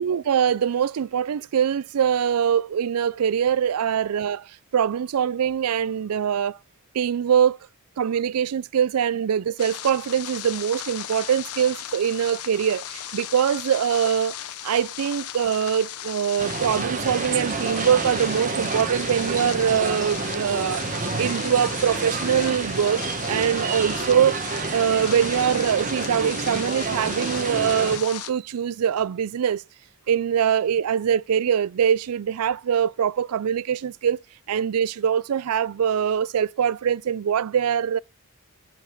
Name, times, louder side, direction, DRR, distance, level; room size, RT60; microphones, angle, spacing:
voice 1, 0.0-6.6 6.9-7.6 8.0-14.3 14.6-20.9 21.2-23.0 23.3-24.4 24.7-29.6 30.1-34.2 34.5-38.0, right 8 dB, 85° right, 0.4 m, -23 dB
sound 1, 9.6-28.3, left 10 dB, 85° left, 0.8 m, -37 dB
sound 2, 16.4-28.0, right 4 dB, 35° right, 1.1 m, -29 dB
6.6 x 6.4 x 7.5 m
head